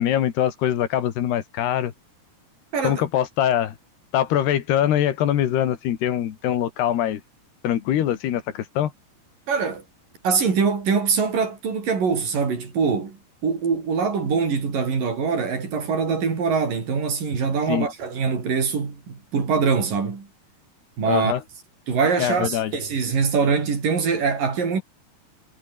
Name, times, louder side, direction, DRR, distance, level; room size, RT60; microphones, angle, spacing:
voice 1, 0.0-1.9 2.8-3.8 4.1-7.2 7.6-8.9 17.7-17.9 21.1-21.4 22.2-22.7, left 11 dB, 65° left, 3.8 m, -23 dB
voice 2, 9.5-9.8 10.2-20.3 21.0-21.3 21.9-24.8, right 5 dB, 50° right, 6.2 m, -23 dB
omnidirectional pair, 5.2 m